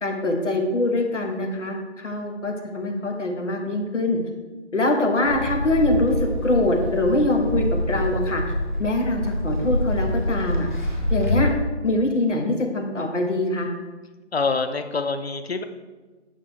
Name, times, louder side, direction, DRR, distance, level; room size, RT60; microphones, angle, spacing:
voice 1, 0.0-4.2 4.7-8.4 8.8-10.7 11.1-11.5 11.8-13.7, left 2 dB, 85° left, 3 dB, 1.4 m, -23 dB
sound 1, 5.3-11.6, left 1 dB, 40° left, 1.1 m, -26 dB
voice 2, 14.3-15.6, left 4 dB, 60° left, 9 dB, 0.7 m, -25 dB
8.2 x 5.8 x 3.1 m, 1.3 s
figure-of-eight pair, 170°, 35 cm